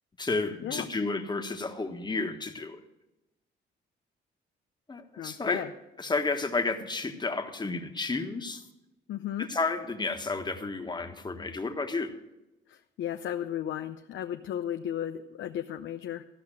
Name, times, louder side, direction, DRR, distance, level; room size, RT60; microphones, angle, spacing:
voice 1, 0.2-2.8 4.9-5.7 6.0-8.6 9.4-12.1, left 3 dB, 20° left, 5 dB, 1.4 m, -31 dB
voice 2, 5.2-5.7 9.1-9.5 12.7-16.2, left 10 dB, 70° left, 7 dB, 0.6 m, -35 dB
14.0 x 5.7 x 9.0 m, 0.95 s
cardioid pair, 90°, 20 cm